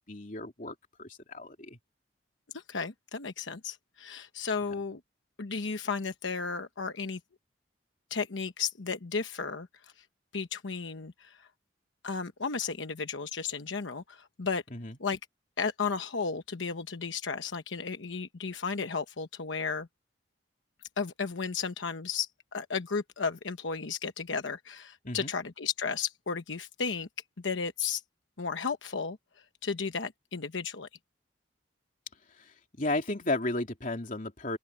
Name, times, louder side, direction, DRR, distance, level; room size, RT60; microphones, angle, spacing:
voice 1, 0.1-1.8 14.7-15.0 25.0-25.3 32.3-34.6, left 2 dB, 45° left, 3.0 m, -34 dB
voice 2, 2.5-5.0 5.4-7.2 8.1-10.0 10.3-11.5 12.0-14.6 15.0-15.2 15.6-19.9 21.0-27.1 27.4-28.0 28.4-30.9, left 5 dB, 85° left, 1.0 m, -34 dB
open air
head